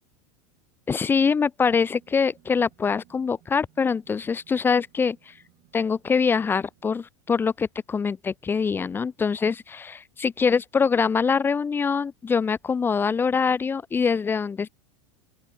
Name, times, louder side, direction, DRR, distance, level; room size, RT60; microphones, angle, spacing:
voice 1, 0.9-5.3 5.7-14.7, left 5 dB, 15° left, 0.3 m, -24 dB
sound 1, 1.7-6.9, right 20 dB, 50° right, 5.6 m, -61 dB
open air
hypercardioid pair, 115°, 17 cm